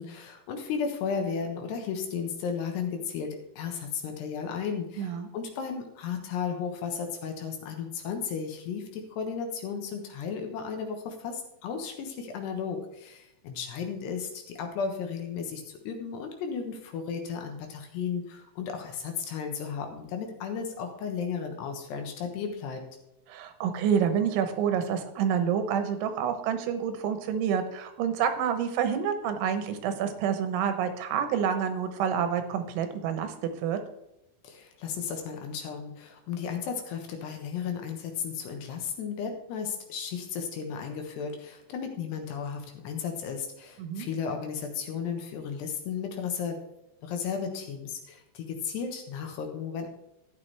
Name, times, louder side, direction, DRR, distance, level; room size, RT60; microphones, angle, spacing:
voice 1, 0.0-22.8 34.4-46.6 47.0-49.9, left 6 dB, 70° left, 4 dB, 3.2 m, -34 dB
voice 2, 5.0-5.3 23.3-33.3 33.6-33.8 43.8-44.1, right 8 dB, 90° right, 8 dB, 3.5 m, -28 dB
13.0 x 9.4 x 3.4 m, 0.87 s
omnidirectional pair, 5.3 m